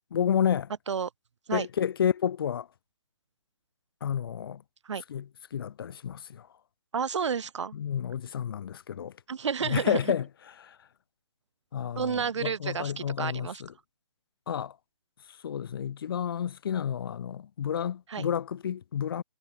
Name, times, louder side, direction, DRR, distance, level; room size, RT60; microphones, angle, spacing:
voice 1, 0.1-0.7 1.5-2.7 4.0-4.6 5.1-6.5 7.7-9.1 9.6-10.3 10.6-10.8 11.7-13.7 14.5-14.8 15.4-19.2, left 8 dB, 50° left, 1.9 m, -30 dB
voice 2, 6.9-7.7 9.3-10.0 12.0-13.6 18.1-18.3, right 6 dB, 75° right, 0.7 m, -31 dB
hypercardioid pair, 150°, 15 cm